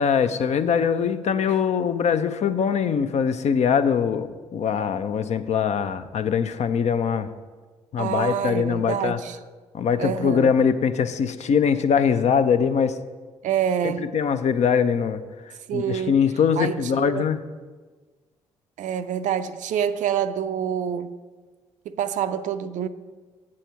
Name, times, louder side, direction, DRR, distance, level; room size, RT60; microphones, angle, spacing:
voice 1, 0.0-7.3 7.9-9.2 9.7-13.0 13.8-15.2 15.7-17.4, left 7 dB, 50° left, 0.5 m, -22 dB
voice 2, 8.0-9.4 10.0-10.5 13.4-14.1 15.7-16.2 16.6-17.2 18.8-21.2 21.9-22.9, right 9 dB, 55° right, 0.4 m, -27 dB
7.6 x 7.3 x 4.4 m
hypercardioid pair, 45°, 15 cm